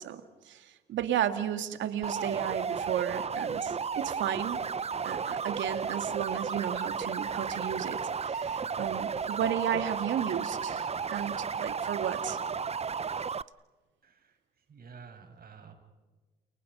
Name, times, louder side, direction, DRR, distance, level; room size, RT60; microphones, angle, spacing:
voice 1, 0.0-4.6 5.0-12.4, right 10 dB, 70° right, 8 dB, 2.2 m, -34 dB
sound 1, 2.0-13.4, right 6 dB, 30° right, 0.7 m, -33 dB
voice 2, 14.0-15.7, right 5 dB, 50° right, 4 dB, 6.6 m, -51 dB
29.5 x 29.5 x 5.6 m, 1.3 s
hypercardioid pair, 50°, 20 cm